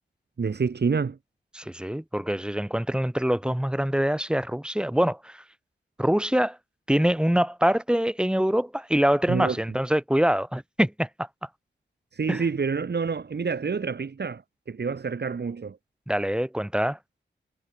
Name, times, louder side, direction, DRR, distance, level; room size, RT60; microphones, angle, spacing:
voice 1, 0.4-1.2 9.3-9.6 12.1-14.4 14.7-15.8, right 5 dB, 60° right, 4.1 m, -27 dB
voice 2, 1.5-5.4 6.0-6.6 6.9-11.1 12.3-12.4 16.1-17.0, equal, 5° right, 3.7 m, -24 dB
wide cardioid pair, 125°, 19 cm